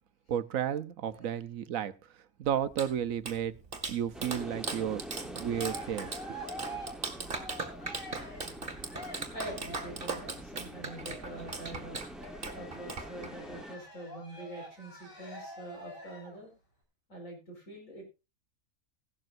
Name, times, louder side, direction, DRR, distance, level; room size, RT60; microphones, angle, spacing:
voice 1, 0.3-1.9 2.4-3.5 3.9-6.1, right 9 dB, 70° right, 1.2 m, -32 dB
Clapping, 2.4-13.6, right 3 dB, 40° right, 1.9 m, -40 dB
sound 1, 4.1-13.8, equal, ahead, 1.0 m, -46 dB
Cheering, 5.1-10.1 10.8-16.4, equal, 40° left, 4.5 m, -46 dB
voice 2, 9.3-12.0 12.5-16.5 17.1-18.0, right 1 dB, 65° left, 5.2 m, -45 dB
16.0 x 12.0 x 2.6 m
omnidirectional pair, 1.5 m